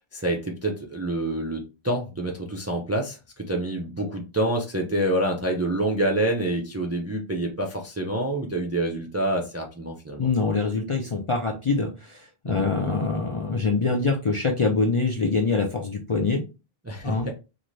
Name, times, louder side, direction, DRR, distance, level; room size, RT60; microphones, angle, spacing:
voice 1, 0.0-10.3 12.4-12.7 16.8-17.3, right 1 dB, 25° right, 1 dB, 0.3 m, -27 dB
voice 2, 10.2-16.4 17.0-17.3, left 4 dB, 45° left, 0 dB, 0.4 m, -24 dB
2.6 x 2.5 x 3.1 m, 0.29 s
omnidirectional pair, 1.0 m